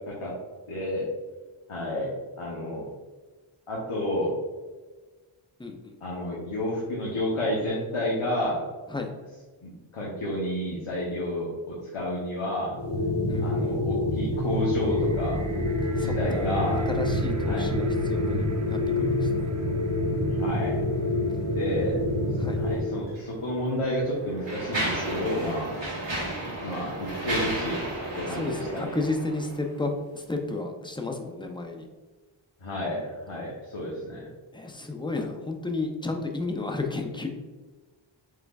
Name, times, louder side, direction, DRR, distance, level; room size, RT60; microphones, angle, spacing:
voice 1, 0.7-1.0 1.7-2.1 2.4-2.9 3.7-4.3 6.0-8.6 9.6-12.8 13.4-15.4 16.0-16.9 17.4-17.7 20.4-20.7 21.5-22.0 22.5-25.7 26.6-27.8 28.3-28.9 32.6-34.3, left 1 dB, 90° left, -5 dB, 0.9 m, -30 dB
voice 2, 5.6-5.9 8.9-9.1 13.3-13.8 15.9-16.6 16.9-19.5 22.4-22.6 28.3-31.9 34.5-37.3, left 3 dB, 10° left, 3 dB, 0.6 m, -32 dB
sound 1, 12.7-22.9, left 1 dB, 55° left, 1.3 m, -27 dB
sound 2, 14.4-24.6 25.4-25.5, right 1 dB, 35° right, 0.6 m, -42 dB
Mechanisms, 23.1-23.2 24.0-29.7, right 1 dB, 65° right, 1.4 m, -33 dB
4.6 x 3.8 x 2.3 m, 1.3 s
wide cardioid pair, 40°, 49 cm